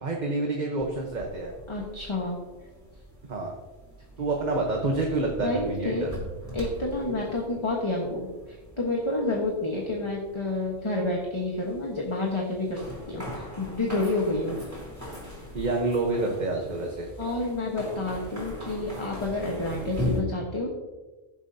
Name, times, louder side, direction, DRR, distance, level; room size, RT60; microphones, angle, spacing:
voice 1, 0.0-1.5 3.3-3.5 4.2-6.1 15.5-17.1, right 2 dB, 45° right, 1 dB, 1.1 m, -28 dB
sound 1, 0.8-20.2, left 1 dB, 15° right, 3.6 m, -40 dB
voice 2, 1.7-2.4 5.4-6.0 6.5-12.8 13.1-14.6 17.2-20.7, left 2 dB, 25° left, -2 dB, 1.3 m, -29 dB
16.5 x 7.2 x 2.8 m, 1.2 s
omnidirectional pair, 1.1 m